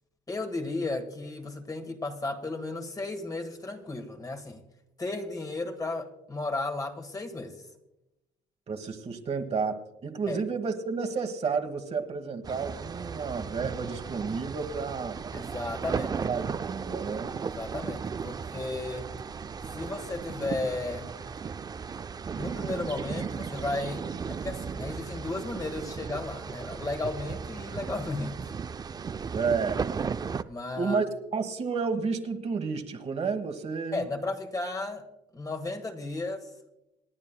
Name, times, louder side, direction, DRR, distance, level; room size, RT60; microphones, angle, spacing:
voice 1, 0.3-4.6 5.0-7.6 10.3-10.4 15.3-16.1 17.5-19.1 19.7-21.1 22.4-28.4 30.4-31.0 33.9-35.1 35.3-36.5, left 2 dB, 20° left, 5 dB, 1.3 m, -34 dB
voice 2, 8.7-15.2 15.9-17.3 29.3-29.8 30.7-31.1 31.3-34.0, right 5 dB, 40° right, 6 dB, 1.3 m, -31 dB
sound 1, 12.4-30.4, right 6 dB, 25° right, 0.4 m, -36 dB
28.0 x 9.7 x 2.2 m, 0.91 s
cardioid pair, 110°, 17 cm